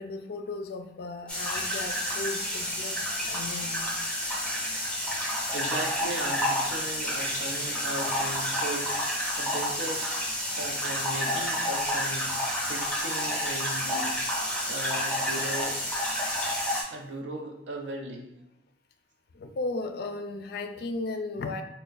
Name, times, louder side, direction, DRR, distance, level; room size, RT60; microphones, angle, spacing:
voice 1, 0.0-3.8 19.3-21.6, left 3 dB, 60° left, 7 dB, 0.4 m, -35 dB
sound 1, 1.3-16.8, equal, 5° left, 0.7 m, -30 dB
voice 2, 5.5-14.2 14.7-15.8 16.9-18.3, right 2 dB, 85° right, 2 dB, 0.6 m, -37 dB
3.4 x 2.2 x 3.9 m, 0.81 s
head